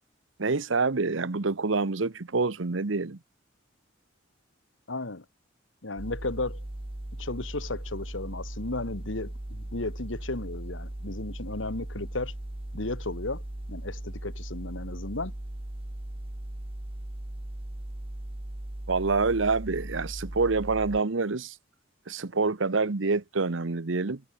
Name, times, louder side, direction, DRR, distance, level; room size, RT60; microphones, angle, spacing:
voice 1, 0.4-3.2 18.9-21.6 22.1-24.2, right 3 dB, 90° right, 1.0 m, -27 dB
voice 2, 4.9-5.2 5.8-6.6 7.2-12.3 12.7-13.4 13.7-15.3, left 2 dB, 85° left, 2.0 m, -34 dB
sound 1, 6.0-21.0, right 1 dB, 30° right, 1.0 m, -38 dB
head